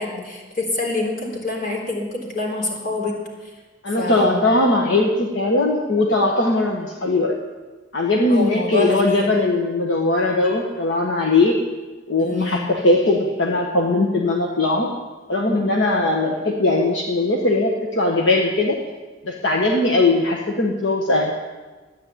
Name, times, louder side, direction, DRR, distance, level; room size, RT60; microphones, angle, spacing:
voice 1, 0.0-3.2 3.4-3.5 4.0-4.4 8.3-9.3 12.2-12.7, left 2 dB, 50° left, 0 dB, 3.6 m, -26 dB
voice 2, 3.8-7.3 7.9-11.6 12.1-14.9 15.3-18.8 19.2-21.3, left 2 dB, 75° left, 0 dB, 1.5 m, -19 dB
13.0 x 9.8 x 8.6 m, 1.3 s
head